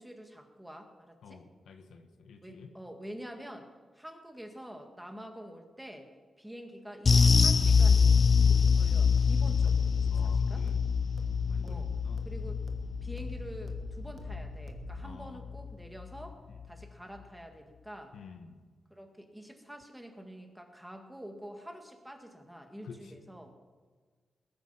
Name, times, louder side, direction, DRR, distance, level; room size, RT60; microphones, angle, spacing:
voice 1, 0.0-1.4 2.4-3.7 3.9-8.2 8.5-10.6 11.6-11.9 12.3-12.6 13.0-18.1 18.9-23.5, equal, 5° right, 4 dB, 1.9 m, -47 dB
voice 2, 1.2-2.7 10.1-10.8 11.5-12.2 15.0-15.4 18.1-18.6 22.8-23.1, left 5 dB, 85° left, 6 dB, 1.4 m, -50 dB
sound 1, 7.1-15.7 16.0-16.2 16.6-16.7, left 5 dB, 45° left, 0.4 m, -25 dB
sound 2, 7.2-15.2, right 6 dB, 55° right, 1.3 m, -48 dB
20.5 x 8.9 x 5.7 m, 1.5 s
cardioid pair, 100°, 0 cm